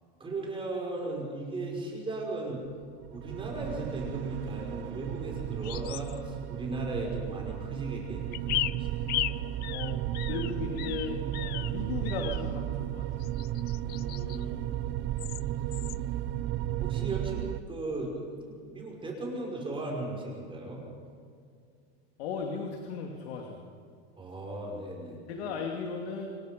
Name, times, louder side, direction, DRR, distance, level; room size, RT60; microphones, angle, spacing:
voice 1, 0.2-2.6 3.1-9.4 13.8-14.8 16.8-20.8 24.2-25.2, right 2 dB, 15° right, -2 dB, 5.8 m, -37 dB
sound 1, 3.0-17.6, right 13 dB, 40° right, 0.7 m, -34 dB
sound 2, 5.6-6.2 8.3-11.7 12.0-12.5 13.2-14.4 15.2-15.4 15.7-16.0, left 16 dB, 30° left, 0.4 m, -36 dB
voice 2, 10.3-13.1 22.2-23.6 25.3-26.3, left 5 dB, 80° left, 2 dB, 2.8 m, -36 dB
26.5 x 23.0 x 5.4 m, 2.3 s
supercardioid pair, 145°, 31 cm